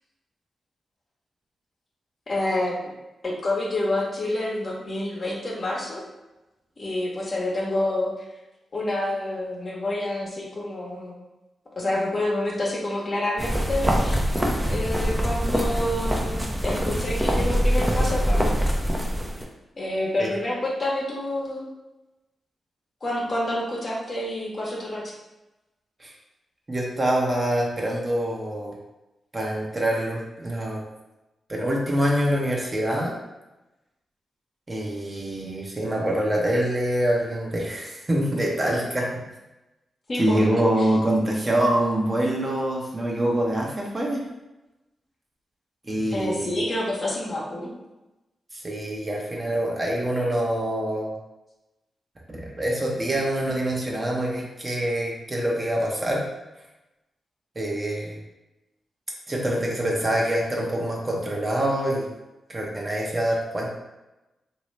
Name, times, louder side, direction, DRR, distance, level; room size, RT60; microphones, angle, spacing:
voice 1, 2.3-2.8 3.2-6.0 6.8-8.1 8.7-11.1 11.8-14.2 14.7-18.6 19.8-21.7 23.0-25.1 40.1-40.4 40.8-40.9 46.1-47.7, left 1 dB, 50° left, -3 dB, 1.0 m, -28 dB
sound 1, 13.4-19.4, equal, 10° right, 0.7 m, -24 dB
voice 2, 26.7-28.8 29.3-30.8 31.5-33.1 34.7-39.3 40.1-44.2 45.8-46.6 48.5-51.2 52.3-56.3 57.5-58.2 59.3-62.1 62.5-63.7, right 1 dB, 35° right, -2 dB, 1.0 m, -25 dB
3.0 x 2.7 x 3.2 m, 1.0 s
supercardioid pair, 40°, 0 cm